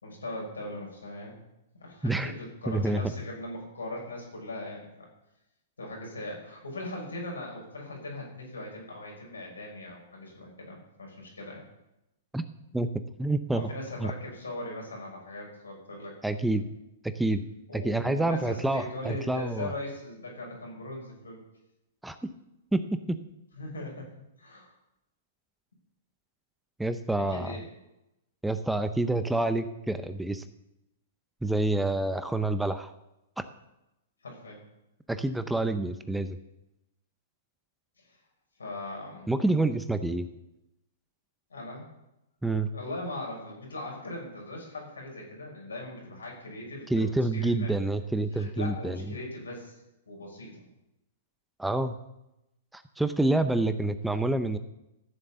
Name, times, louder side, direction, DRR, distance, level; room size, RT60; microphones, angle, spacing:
voice 1, 0.0-1.4 1.8-5.1 5.8-11.6 13.5-16.6 17.7-21.4 23.5-24.1 24.4-24.7 27.3-27.6 34.2-34.6 38.1-38.2 38.6-39.3 41.5-41.9 42.7-47.1 47.3-47.7 48.3-49.8 50.1-50.6, left 1 dB, 85° left, 0 dB, 5.7 m, -39 dB
voice 2, 2.7-3.0 12.3-12.4 12.7-12.9 13.2-13.7 14.0-14.1 16.2-16.6 17.0-17.4 17.7-19.7 22.0-22.2 22.7-23.2 26.8-27.6 28.4-30.4 31.4-32.9 35.1-36.4 39.3-40.3 42.4-42.7 46.9-49.1 51.6-52.0 52.7-54.6, right 2 dB, 5° right, 10 dB, 0.7 m, -27 dB
14.0 x 7.4 x 7.0 m, 0.91 s
hypercardioid pair, 115°, 0 cm